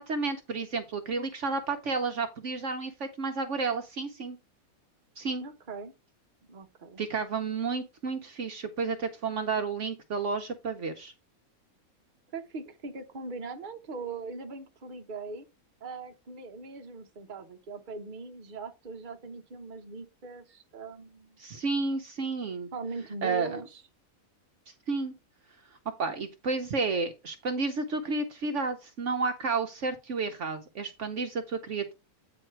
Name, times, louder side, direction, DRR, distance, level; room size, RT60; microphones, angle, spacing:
voice 1, 0.0-4.4 5.2-5.4 7.0-11.1 21.4-22.7 23.2-23.6 24.9-25.1 26.0-31.9, right 4 dB, 60° right, 1.1 m, -31 dB
voice 2, 5.4-5.9 6.5-7.0 12.3-15.5 15.8-21.4 22.7-23.8, right 4 dB, 40° right, 1.1 m, -40 dB
9.0 x 4.1 x 4.5 m
omnidirectional pair, 1.5 m